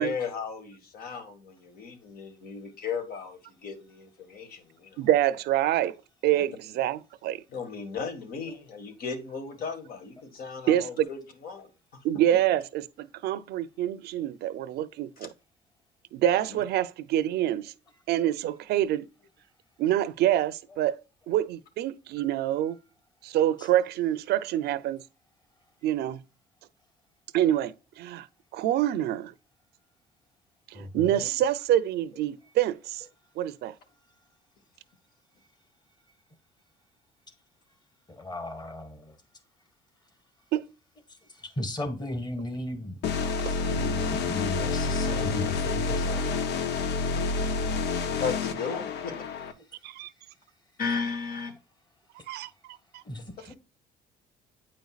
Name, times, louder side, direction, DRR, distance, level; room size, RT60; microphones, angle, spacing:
voice 1, 0.0-5.1 6.3-6.4 7.5-12.0 15.2-15.3 16.5-16.6 47.1-49.3 50.8-51.5, left 5 dB, 60° left, 1.8 m, -36 dB
voice 2, 5.0-6.0 6.2-7.4 10.7-11.1 12.0-15.3 16.1-17.7 18.1-19.0 19.8-21.0 21.3-22.8 23.2-25.0 25.8-26.2 27.3-28.3 28.5-29.3 30.7-33.0 33.4-33.7 40.5-40.6 49.8-50.1 52.3-52.5, right 12 dB, 75° right, 0.6 m, -26 dB
voice 3, 30.7-31.3 32.1-32.2 38.1-39.2 41.1-43.0 43.5-46.3 48.7-48.8 49.1-49.3 49.6-50.0 52.2-52.3 53.0-53.6, left 1 dB, 25° left, 1.8 m, -37 dB
sound 1, 43.0-49.5, left 4 dB, 80° left, 0.8 m, -28 dB
8.9 x 5.2 x 2.4 m
cardioid pair, 110°, 17 cm